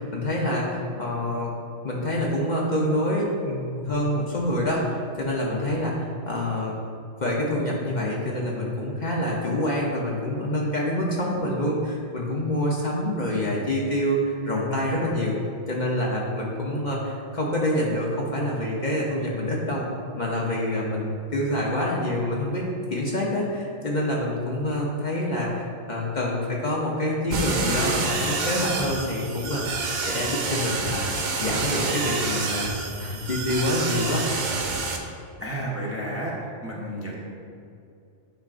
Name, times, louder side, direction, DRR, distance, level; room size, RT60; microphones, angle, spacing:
voice 1, 0.0-1.5 1.8-6.8 7.2-15.4 15.7-19.9 20.2-31.1 31.4-32.7 33.0-34.2, left 1 dB, 45° left, -3 dB, 0.8 m, -26 dB
sound 1, 27.3-35.0, right 4 dB, 50° right, 0.6 m, -28 dB
voice 2, 35.4-36.3 36.6-37.2, right 1 dB, 15° right, -5 dB, 0.7 m, -31 dB
8.9 x 5.0 x 2.5 m, 2.5 s
omnidirectional pair, 1.2 m